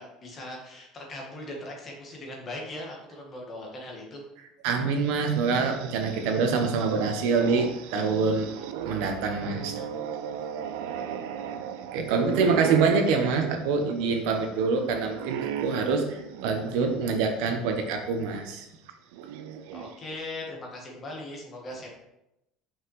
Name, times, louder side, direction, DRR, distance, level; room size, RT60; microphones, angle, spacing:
voice 1, 0.0-4.2 19.7-21.9, left 1 dB, 25° left, -1 dB, 1.6 m, -39 dB
voice 2, 4.6-8.5 8.8-9.9 11.9-18.7, right 4 dB, 65° right, 4 dB, 1.2 m, -25 dB
sound 1, 5.0-17.3 17.7-17.8 18.9-20.2, right 9 dB, 85° right, 0.6 m, -36 dB
5.8 x 5.6 x 4.9 m, 0.87 s
cardioid pair, 170°, 0 cm